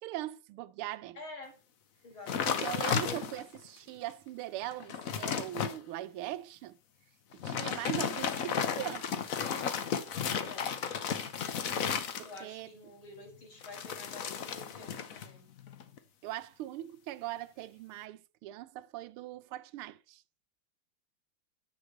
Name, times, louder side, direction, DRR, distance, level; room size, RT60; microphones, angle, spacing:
voice 1, 0.0-1.2 2.5-6.8 7.3-9.1 12.2-12.7 16.2-20.2, right 14 dB, 90° right, 1.5 m, -40 dB
voice 2, 1.1-1.5 2.0-3.3 10.4-10.7 12.2-15.5, left 2 dB, 75° left, 5.2 m, -49 dB
sound 1, 2.3-3.6 4.1-4.2 4.6-5.8 7.3-12.6 13.6-15.3 15.6-16.0, left 7 dB, 55° left, 1.0 m, -34 dB
7.7 x 6.4 x 6.6 m
omnidirectional pair, 2.3 m